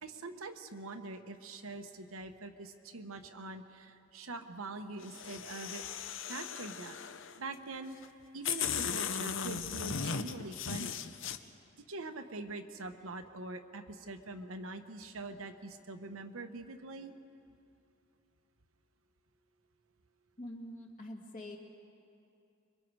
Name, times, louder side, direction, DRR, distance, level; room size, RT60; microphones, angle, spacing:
voice 1, 0.0-5.8 6.3-7.0 7.4-8.0 8.3-11.0 11.9-17.1, right 2 dB, 90° right, 6 dB, 1.2 m, -44 dB
sound 1, 5.0-7.4 8.0-8.1 8.4-11.4, left 7 dB, 65° left, 0.8 m, -37 dB
voice 2, 20.4-21.6, left 1 dB, 40° left, 1 dB, 2.3 m, -45 dB
26.0 x 23.0 x 4.8 m, 2.6 s
head